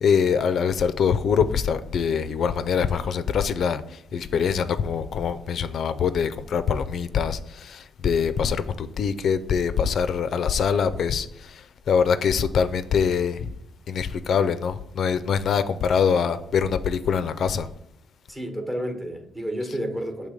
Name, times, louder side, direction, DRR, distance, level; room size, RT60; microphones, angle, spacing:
voice 1, 0.0-3.8 4.1-11.6 11.9-13.5 13.9-17.7, left 6 dB, 60° left, 0.4 m, -24 dB
voice 2, 18.3-20.3, equal, 15° right, 1.1 m, -30 dB
6.6 x 3.3 x 5.0 m
cardioid pair, 90°, 0 cm